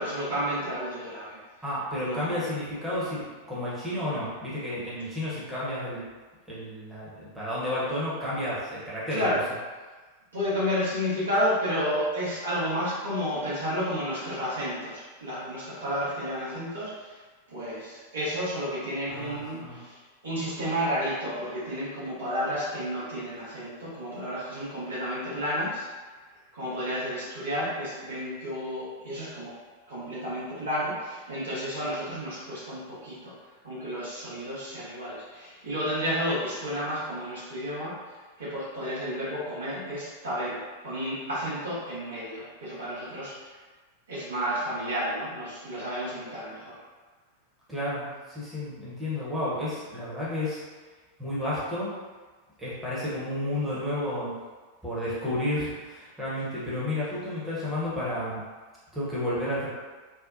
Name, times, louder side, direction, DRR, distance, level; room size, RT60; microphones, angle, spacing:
voice 1, 0.0-1.4 2.0-2.4 9.1-9.4 10.3-17.2 17.5-26.1 26.5-29.5 29.9-33.3 33.6-43.5 44.1-46.7, equal, 70° right, -9 dB, 1.0 m, -31 dB
voice 2, 1.6-6.0 6.5-9.3 19.1-19.8 47.7-50.6 51.2-51.9 52.6-54.3 54.8-58.4 58.9-59.7, left 1 dB, 5° right, -10 dB, 0.9 m, -31 dB
2.7 x 2.1 x 2.4 m, 1.4 s
figure-of-eight pair, 90°, 0 cm